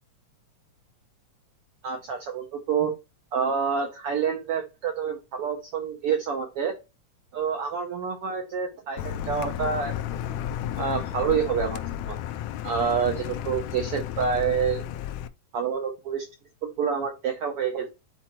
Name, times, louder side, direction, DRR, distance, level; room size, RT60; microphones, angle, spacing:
voice 1, 1.8-2.9 3.3-6.8 7.3-10.2 10.8-11.8 12.1-12.2 12.6-14.8 15.5-16.3 16.6-17.9, right 6 dB, 70° right, 3 dB, 1.4 m, -27 dB
Car, 9.0-15.3, left 11 dB, 80° left, 1.7 m, -33 dB
10.5 x 4.3 x 3.0 m, 0.29 s
omnidirectional pair, 3.6 m